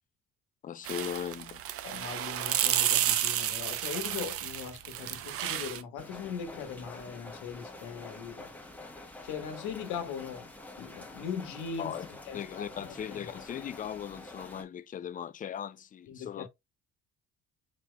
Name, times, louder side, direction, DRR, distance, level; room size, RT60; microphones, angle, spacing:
voice 1, 0.6-1.6 11.8-12.1 12.3-16.5, left 9 dB, 30° left, 0.4 m, -38 dB
sound 1, 0.8-5.8, right 11 dB, 50° right, 0.5 m, -31 dB
voice 2, 1.8-8.5 9.2-10.5 10.8-12.0 12.3-13.3 16.1-16.5, left 7 dB, 85° left, 1.3 m, -40 dB
sound 2, 6.0-14.6, left 2 dB, 5° left, 0.9 m, -47 dB
4.4 x 4.1 x 2.2 m
cardioid pair, 120°, 30 cm